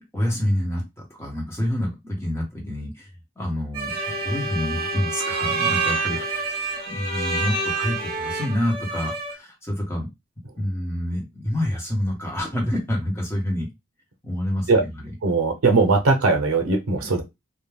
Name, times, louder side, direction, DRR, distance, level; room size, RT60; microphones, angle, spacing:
voice 1, 0.1-3.1 3.4-6.4 6.9-10.1 10.6-13.7 14.2-15.1 17.0-17.1, left 1 dB, 10° left, 0.9 m, -27 dB
sound 1, 3.7-9.3, right 4 dB, 25° right, 0.8 m, -31 dB
Bowed string instrument, 3.9-8.6, right 3 dB, 45° left, 1.1 m, -29 dB
voice 2, 15.2-17.2, right 3 dB, 85° right, 0.6 m, -19 dB
2.3 x 2.1 x 3.3 m
head